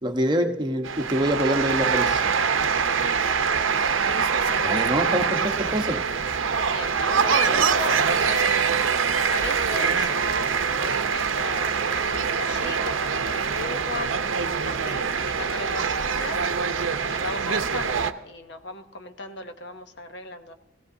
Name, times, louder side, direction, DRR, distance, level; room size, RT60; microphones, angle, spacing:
voice 1, 0.0-2.2 4.6-6.0, equal, 20° right, 4 dB, 0.9 m, -25 dB
sound 1, 0.8-18.1, right 6 dB, 80° right, 0.7 m, -24 dB
voice 2, 5.5-6.0 6.6-16.4 17.0-20.5, left 2 dB, 60° left, 7 dB, 0.8 m, -37 dB
18.5 x 16.5 x 2.7 m, 1.0 s
head